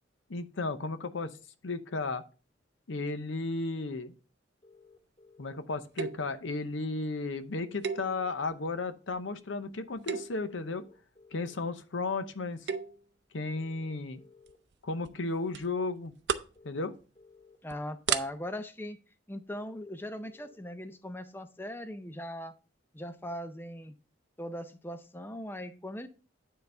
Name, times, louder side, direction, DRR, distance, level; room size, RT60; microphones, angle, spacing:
voice 1, 0.3-1.3 1.6-2.2 2.9-4.1 5.4-10.9 11.3-12.7 13.3-14.2 14.8-16.1 16.6-16.9, left 3 dB, 85° left, 11 dB, 0.7 m, -34 dB
sound 1, 4.6-5.6 7.6-8.6 10.5-11.6 13.5-14.6 16.5-17.6 19.5-20.6, left 4 dB, 35° left, 2.5 m, -58 dB
sound 2, 6.0-6.4 7.8-8.5 9.1-9.4 9.9-10.5 12.4-13.0 14.5-14.7 15.0-15.1 15.5-15.7 16.0-16.6 17.0-17.2 17.7-17.8 18.1-18.2, right 6 dB, 65° right, 0.6 m, -34 dB
voice 2, 17.6-19.0 19.3-22.5 22.9-23.9 24.4-26.1, equal, 10° left, 10 dB, 0.5 m, -39 dB
9.4 x 3.9 x 5.5 m, 0.35 s
head